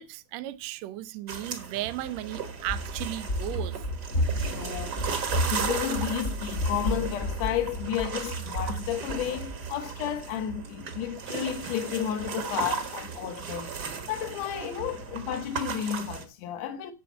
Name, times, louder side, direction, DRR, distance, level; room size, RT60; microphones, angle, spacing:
voice 1, 0.0-3.8, right 14 dB, 75° right, 1.9 m, -35 dB
sound 1, 1.3-16.2, right 6 dB, 45° right, 1.4 m, -36 dB
Run, 2.6-9.6, equal, 50° left, 1.0 m, -32 dB
voice 2, 4.4-5.0 5.4-13.7 14.1-16.9, left 10 dB, 70° left, 2.3 m, -32 dB
10.5 x 4.0 x 7.1 m
omnidirectional pair, 3.3 m